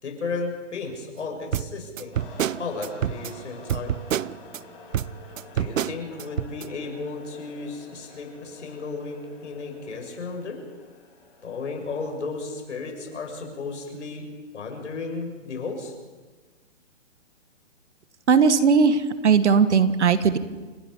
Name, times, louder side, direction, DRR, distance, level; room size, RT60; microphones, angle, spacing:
voice 1, 0.0-2.2 2.6-4.0 5.5-10.6 11.4-14.3 14.5-15.9, left 4 dB, 65° left, 3 dB, 6.3 m, -34 dB
sound 1, 1.5-4.6 4.9-6.7, right 10 dB, 85° right, 0.7 m, -28 dB
sound 2, 2.1-13.6, left 4 dB, 40° left, 6.3 m, -49 dB
voice 2, 18.3-20.4, right 5 dB, 60° right, 12 dB, 1.7 m, -18 dB
29.5 x 17.5 x 5.5 m, 1.3 s
hypercardioid pair, 175°, 38 cm